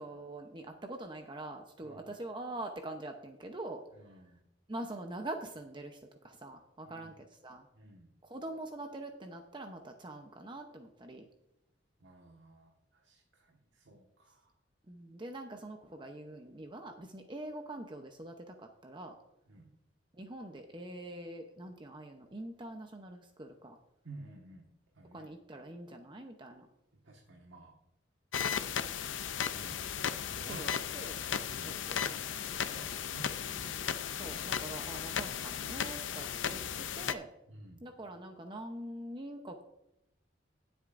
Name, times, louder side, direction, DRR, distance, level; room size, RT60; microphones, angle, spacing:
voice 1, 0.0-3.8 4.7-7.7 8.2-11.3 14.9-19.1 20.1-23.8 25.0-26.7 30.5-31.2 31.6-32.0 34.2-37.3 37.8-39.6, right 1 dB, 25° right, 4 dB, 0.8 m, -44 dB
voice 2, 3.9-4.4 6.8-7.1 7.7-8.1 12.0-14.5 19.5-19.7 24.0-24.7 24.9-25.3 27.0-27.7 29.5-29.8 30.2-30.7 31.4-33.8 37.5-37.8, right 2 dB, 85° right, 0 dB, 1.6 m, -53 dB
sound 1, 28.3-37.1, left 8 dB, 90° left, 0.6 m, -36 dB
18.0 x 7.9 x 2.6 m, 0.84 s
head